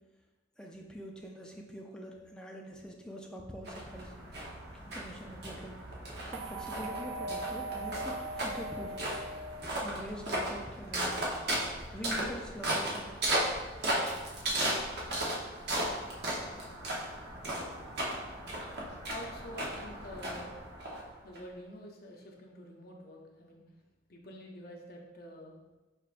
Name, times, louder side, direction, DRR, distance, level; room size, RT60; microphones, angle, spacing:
voice 1, 0.6-4.1 4.7-5.8 6.3-9.0 9.8-11.3 11.9-13.2, equal, 5° left, 0 dB, 0.4 m, -44 dB
sound 1, 3.7-21.4, right 1 dB, 55° right, 0.8 m, -36 dB
sound 2, 6.3-10.5, right 2 dB, 75° right, 0.3 m, -40 dB
voice 2, 19.1-20.6 21.2-23.6 24.1-25.6, left 1 dB, 50° left, 0 dB, 0.6 m, -47 dB
4.6 x 3.5 x 2.5 m, 1.1 s
head